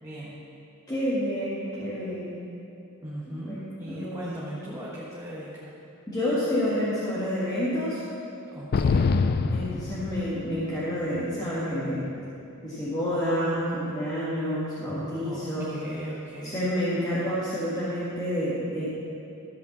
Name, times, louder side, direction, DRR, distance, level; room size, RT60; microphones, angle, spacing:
voice 1, 0.0-0.4 3.0-5.7 8.5-9.1 15.2-16.6, right 1 dB, 15° right, -7 dB, 1.4 m, -38 dB
voice 2, 0.9-2.4 3.3-3.6 3.9-4.2 6.1-8.0 9.5-12.1 12.6-15.7 16.4-18.9, equal, 20° left, -10 dB, 1.8 m, -29 dB
sound 1, 8.7-10.6, left 4 dB, 45° left, 0.4 m, -24 dB
13.5 x 5.6 x 7.3 m, 2.7 s
head